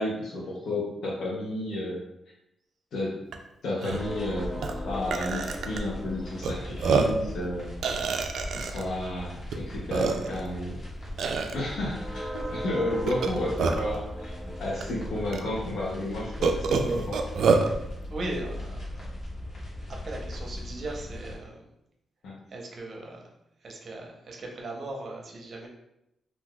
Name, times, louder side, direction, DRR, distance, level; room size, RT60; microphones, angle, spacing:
voice 1, 0.0-2.0 2.9-3.2 3.6-8.0 8.5-10.8 11.5-14.3 14.6-17.3 22.2-22.4, left 1 dB, 75° left, -5 dB, 0.7 m, -32 dB
Burping eructation, 3.3-3.4 3.8-4.0 4.6-4.7 5.1-5.8 6.4-6.5 6.8-7.2 7.8-8.8 9.5-9.6 9.9-10.5 11.2-11.5 13.1-14.0 14.8-14.9 15.3-15.4 16.4-17.7, right 5 dB, 75° right, 0.3 m, -26 dB
sound 1, 3.9-21.4, equal, 50° left, 1.1 m, -38 dB
voice 2, 18.1-19.1 19.9-21.6 22.5-23.3 23.6-25.7, right 2 dB, 50° right, 0 dB, 0.7 m, -38 dB
2.5 x 2.3 x 3.5 m, 0.84 s
cardioid pair, 115°, 0 cm